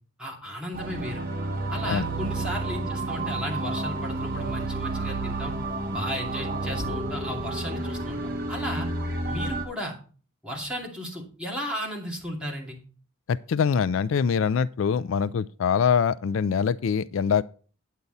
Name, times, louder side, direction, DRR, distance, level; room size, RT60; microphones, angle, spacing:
voice 1, 0.2-1.2 1.7-5.5 5.9-8.9 9.3-10.0 10.4-12.8, equal, 5° right, 2.5 m, -34 dB
sound 1, 0.7-9.6, right 2 dB, 45° right, 1.7 m, -30 dB
voice 2, 13.3-17.4, left 6 dB, 75° left, 0.4 m, -24 dB
9.0 x 8.4 x 4.0 m
head